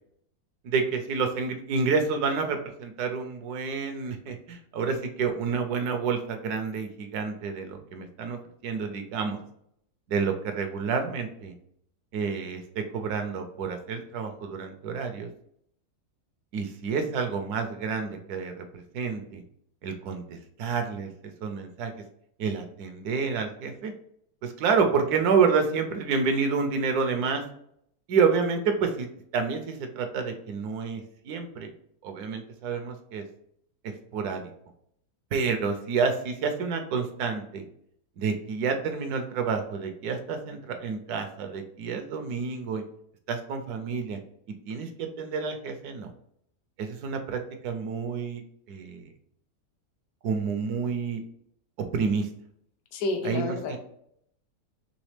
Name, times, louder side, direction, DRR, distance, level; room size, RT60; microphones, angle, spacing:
voice 1, 0.6-8.4 8.6-9.4 10.1-11.5 12.1-15.3 16.5-19.4 19.8-21.9 22.4-23.9 24.4-27.4 28.1-29.1 29.3-31.7 32.0-33.2 33.8-34.4 35.3-37.6 38.2-42.8 43.3-44.2 44.7-46.1 46.8-48.4 48.7-49.1 50.2-51.2 51.9-52.3 53.2-53.8, right 5 dB, 75° right, 5 dB, 1.1 m, -29 dB
voice 2, 52.9-53.8, left 2 dB, 70° left, 4 dB, 1.2 m, -30 dB
4.0 x 3.4 x 3.2 m, 0.71 s
omnidirectional pair, 1.7 m